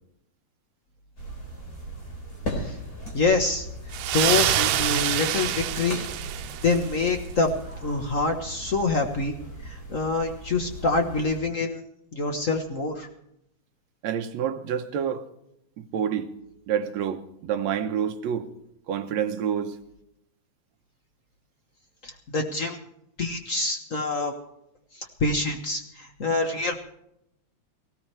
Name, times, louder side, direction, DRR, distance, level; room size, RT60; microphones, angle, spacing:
sound 1, 1.2-11.4, right 1 dB, 30° left, 4.4 m, -38 dB
voice 1, 3.1-3.7 4.1-6.0 6.6-7.5 7.8-9.4 9.6-11.8 12.1-13.1 22.0-22.8 23.2-24.3 24.9-26.8, left 3 dB, 60° left, 0.8 m, -26 dB
sound 2, 3.9-7.0, right 12 dB, 90° right, 2.1 m, -26 dB
voice 2, 14.0-15.3 15.8-16.3 16.7-18.5 18.9-19.8, right 8 dB, 70° right, 2.1 m, -28 dB
19.0 x 17.0 x 3.3 m
omnidirectional pair, 3.3 m